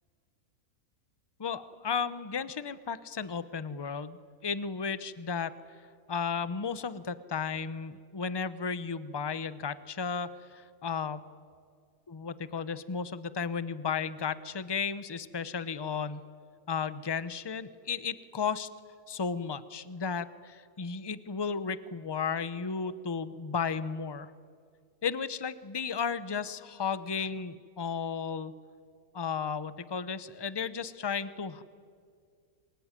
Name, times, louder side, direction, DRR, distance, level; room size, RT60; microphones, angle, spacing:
voice 1, 1.4-5.5 6.1-11.3 12.1-16.2 16.7-18.7 19.1-24.3 25.0-28.5 29.1-31.6, left 6 dB, 25° left, 15 dB, 0.6 m, -34 dB
27.0 x 21.5 x 9.8 m, 2.2 s
omnidirectional pair, 1.6 m